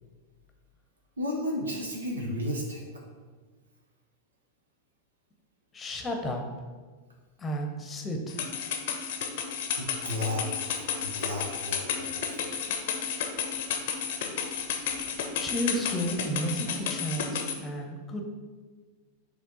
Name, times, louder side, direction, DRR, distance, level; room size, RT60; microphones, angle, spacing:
voice 1, 1.2-3.0 9.8-12.5, left 1 dB, 70° right, 0 dB, 1.1 m, -34 dB
voice 2, 5.7-6.4 7.4-8.4 15.4-18.2, equal, 20° left, 3 dB, 1.0 m, -32 dB
sound 1, 8.3-17.5, left 7 dB, 50° left, 0.7 m, -32 dB
7.0 x 3.2 x 5.3 m, 1.5 s
figure-of-eight pair, 90°, 0 cm